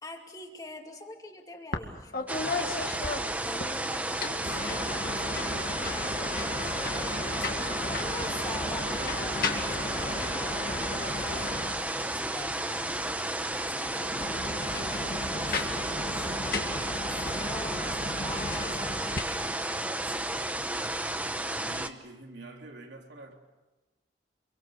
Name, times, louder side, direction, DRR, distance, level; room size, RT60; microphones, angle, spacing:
voice 1, 0.0-7.5 7.9-15.5 15.9-20.3, left 2 dB, 20° left, 2.4 m, -45 dB
sound 1, 1.7-1.9 2.1-3.7 4.1-12.2 13.9-19.2, left 3 dB, 50° left, 2.2 m, -35 dB
sound 2, 2.3-21.9, right 1 dB, 10° right, 0.9 m, -32 dB
voice 2, 21.6-23.4, right 2 dB, 80° right, 3.7 m, -46 dB
28.0 x 23.5 x 6.7 m
head